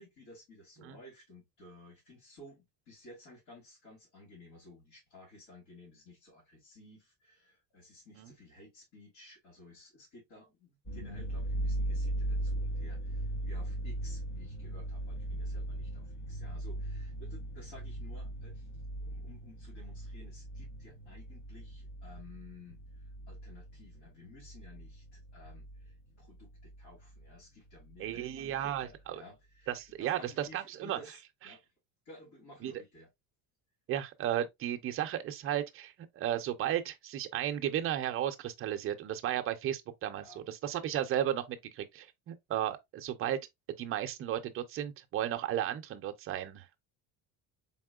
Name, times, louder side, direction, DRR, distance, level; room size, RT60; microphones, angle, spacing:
voice 1, 0.0-18.7 19.0-31.7 32.0-33.1 40.1-40.4, left 2 dB, 75° left, 2.6 m, -55 dB
sound 1, 10.9-26.0 26.2-27.3 27.7-27.8 28.1-28.8, right 1 dB, 25° left, 0.8 m, -38 dB
voice 2, 28.0-29.2 29.7-31.0 32.6-32.7 33.9-43.4 43.8-46.8, right 11 dB, 35° right, 0.5 m, -34 dB
4.2 x 3.7 x 2.3 m
cardioid pair, 155°, 39 cm